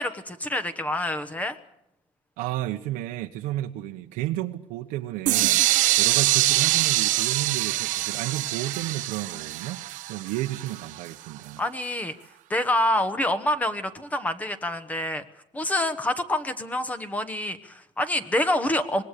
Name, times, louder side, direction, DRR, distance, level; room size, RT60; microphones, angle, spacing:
voice 1, 0.0-1.6 11.6-12.2 12.5-15.2 15.5-19.0, left 1 dB, 10° left, 1.2 m, -27 dB
voice 2, 2.4-11.6, right 14 dB, 90° right, 1.2 m, -32 dB
sound 1, 5.3-11.1, right 16 dB, 65° right, 0.9 m, -24 dB
25.0 x 20.5 x 6.8 m
cardioid pair, 165°, 14 cm